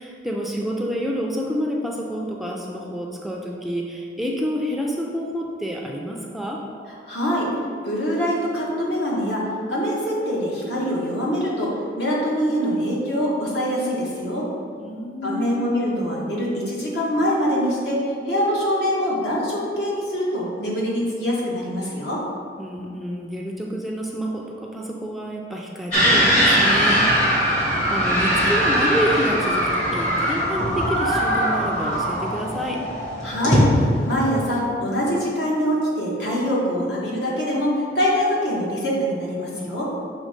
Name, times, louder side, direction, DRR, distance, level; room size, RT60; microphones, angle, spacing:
voice 1, 0.0-6.6 14.8-15.6 22.6-27.5 27.9-32.9, equal, ahead, -1 dB, 0.4 m, -28 dB
voice 2, 7.1-7.5 7.8-14.5 15.2-18.0 18.3-22.2 33.2-33.6 34.0-39.9, equal, 70° left, -5 dB, 1.5 m, -24 dB
sound 1, 25.9-34.6, equal, 40° left, 1.4 m, -20 dB
6.4 x 3.3 x 5.1 m, 2.3 s
head